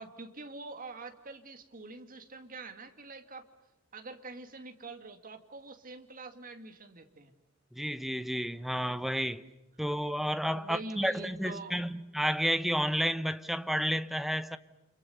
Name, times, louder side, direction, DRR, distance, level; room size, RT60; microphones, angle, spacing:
voice 1, 0.0-3.5 3.9-7.3 10.5-11.8, right 3 dB, 40° right, 2.3 m, -45 dB
voice 2, 7.7-9.4 9.8-14.6, equal, ahead, 0.9 m, -31 dB
29.5 x 27.0 x 6.7 m
head